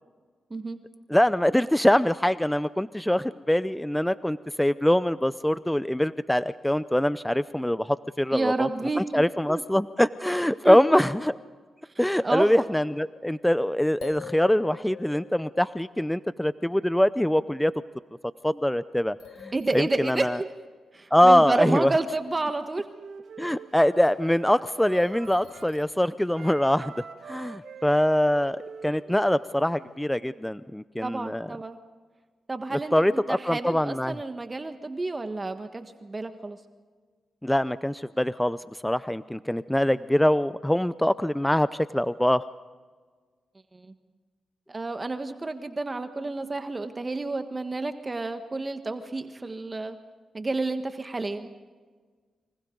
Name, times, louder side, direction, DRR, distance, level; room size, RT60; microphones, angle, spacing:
voice 1, 1.1-8.7 9.0-11.3 12.0-17.7 18.4-20.4 21.1-21.9 23.4-26.9 27.2-31.5 32.9-34.2 37.4-38.6 38.8-42.4, left 1 dB, 5° left, 15 dB, 0.6 m, -23 dB
voice 2, 8.3-9.2 9.5-9.6 10.6-11.0 12.2-12.5 19.5-20.5 20.9-22.9 31.0-31.8 32.5-36.6 43.7-43.9 44.7-50.0 50.3-51.5, right 3 dB, 30° right, 7 dB, 1.5 m, -30 dB
sound 1, 13.6-13.7 14.0-16.0 19.2-20.9 24.9-26.8, left 7 dB, 90° left, 1.4 m, -45 dB
Wind instrument woodwind instrument, 22.4-25.8 26.3-29.9, right 6 dB, 70° right, 2.3 m, -45 dB
29.5 x 25.5 x 4.0 m, 1.5 s
cardioid pair, 55°, 0 cm